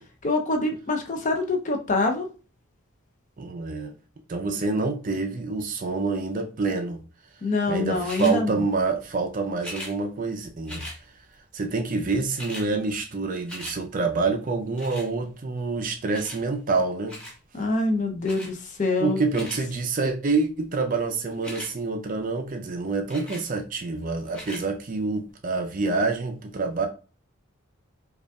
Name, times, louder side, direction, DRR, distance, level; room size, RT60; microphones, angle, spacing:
voice 1, 0.2-2.3 7.4-8.6 17.5-19.2, left 2 dB, 35° left, 0.5 m, -25 dB
voice 2, 3.4-4.0 4.3-7.0 7.7-10.9 11.5-17.2 19.0-26.9, right 3 dB, 35° right, 0.4 m, -27 dB
sound 1, 8.0-8.4 9.6-9.9 10.7-11.0 11.9-12.0 12.2-12.7 13.1-13.8 14.8-15.1 16.1-16.4 17.1-17.4 18.2-18.5 19.1-19.6 21.3-21.7 23.1-23.5 24.3-24.6 25.3-25.4, equal, 5° left, 0.9 m, -39 dB
5.1 x 2.4 x 2.2 m
head